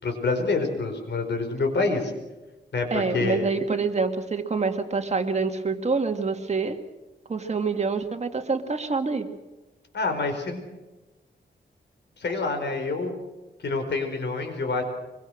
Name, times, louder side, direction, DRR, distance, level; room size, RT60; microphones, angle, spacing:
voice 1, 0.0-2.1 2.7-3.5 9.9-10.6 12.2-13.1 13.6-14.8, left 3 dB, 70° left, 5 dB, 4.9 m, -27 dB
voice 2, 2.9-6.8 7.3-9.3, right 4 dB, 40° right, 5 dB, 2.2 m, -26 dB
24.0 x 23.0 x 6.5 m, 1.1 s
wide cardioid pair, 100°, 18 cm